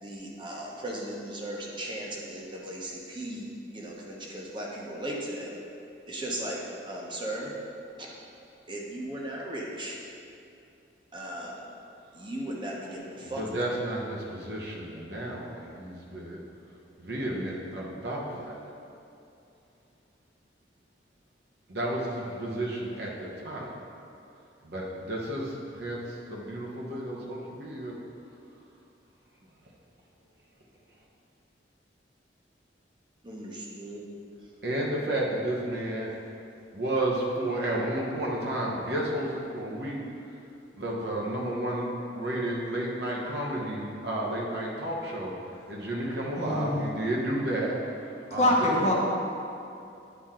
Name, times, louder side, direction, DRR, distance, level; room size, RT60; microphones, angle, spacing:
voice 1, 0.0-5.5 6.1-7.5 8.0-8.1 8.7-10.0 11.1-11.6 12.1-13.4 33.2-34.1, right 1 dB, 25° right, -3 dB, 0.9 m, -37 dB
voice 2, 13.4-16.4 17.0-18.5 21.7-23.7 24.6-26.0 26.3-27.9 34.6-36.1 36.7-40.0 40.8-45.3 45.7-47.7 48.3-48.7, right 1 dB, 65° right, -3 dB, 1.1 m, -32 dB
voice 3, 46.3-46.9 48.3-48.9, left 1 dB, 40° left, -2 dB, 0.9 m, -24 dB
9.5 x 4.3 x 3.7 m, 2.6 s
head